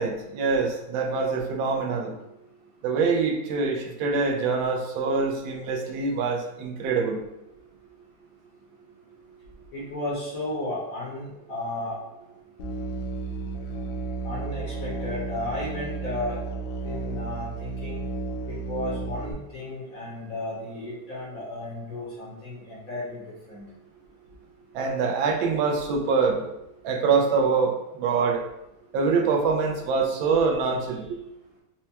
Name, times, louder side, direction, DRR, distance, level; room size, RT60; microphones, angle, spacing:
voice 1, 0.0-2.1 2.8-7.2 24.7-26.5 26.8-28.4 28.9-31.2, right 4 dB, 80° right, 1 dB, 1.3 m, -24 dB
voice 2, 9.7-12.0 12.2-12.3 14.2-16.4 16.8-18.0 18.5-23.7, left 1 dB, 60° left, -5 dB, 1.0 m, -34 dB
Musical instrument, 12.6-19.3, right 3 dB, 75° left, 1.3 m, -33 dB
4.4 x 2.2 x 2.7 m, 0.87 s
omnidirectional pair, 2.2 m